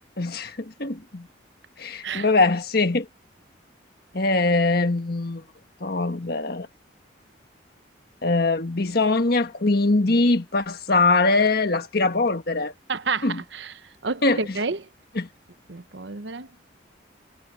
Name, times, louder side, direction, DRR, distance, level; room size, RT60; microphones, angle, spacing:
voice 1, 0.2-1.3 1.8-3.1 4.1-5.4 5.8-6.7 8.2-12.7 13.2-13.4 14.2-14.6 15.1-15.3, left 3 dB, 55° left, 1.5 m, -22 dB
voice 2, 12.9-13.7 14.0-14.9 15.7-16.5, right 4 dB, 70° right, 1.0 m, -29 dB
head